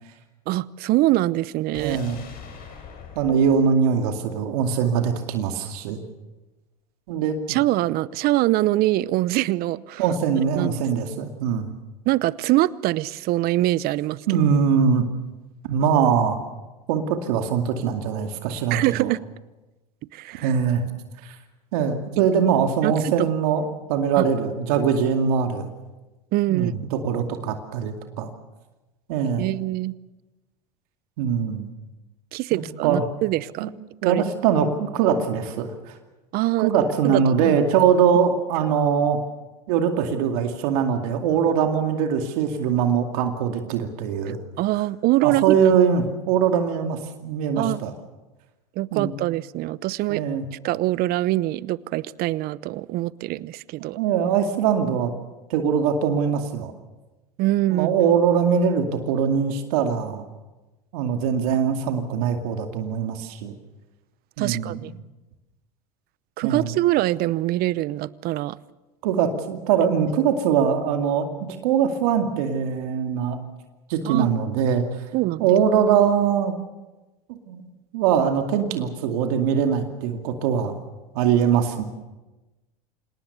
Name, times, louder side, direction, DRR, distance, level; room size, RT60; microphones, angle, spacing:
voice 1, 0.5-2.0 7.5-10.0 10.6-10.8 12.1-14.4 18.7-19.2 20.1-20.5 22.8-23.3 24.2-24.3 26.3-26.7 29.4-29.9 32.3-33.7 34.0-34.2 36.3-36.7 37.0-37.6 44.6-45.6 47.6-47.8 48.8-50.2 50.5-54.0 57.4-57.9 64.4-64.9 66.4-68.6 74.0-74.3 75.1-75.5, right 17 dB, 50° right, 20 dB, 0.8 m, -23 dB
sound 1, 1.7-4.9 5.2-5.3, left 6 dB, 45° left, 6.1 m, -43 dB
voice 2, 1.8-2.2 3.2-6.0 7.1-7.6 10.0-11.7 14.3-15.0 15.6-16.4 16.9-19.1 20.4-20.8 21.2-21.4 21.7-23.6 23.9-25.7 26.5-28.3 29.1-29.5 31.2-31.7 32.5-33.0 33.6-33.7 34.0-35.9 36.6-39.2 39.7-44.4 45.2-47.9 48.9-49.1 50.1-50.4 53.9-55.1 55.5-56.7 57.7-60.3 60.9-63.5 64.4-64.9 66.4-66.7 69.0-71.3 71.6-73.4 73.9-75.0 75.4-76.5 77.3-77.7 77.9-80.8 81.1-81.8, right 7 dB, 70° right, 5 dB, 2.4 m, -22 dB
27.0 x 18.5 x 7.0 m, 1.1 s
hypercardioid pair, 90°, 20 cm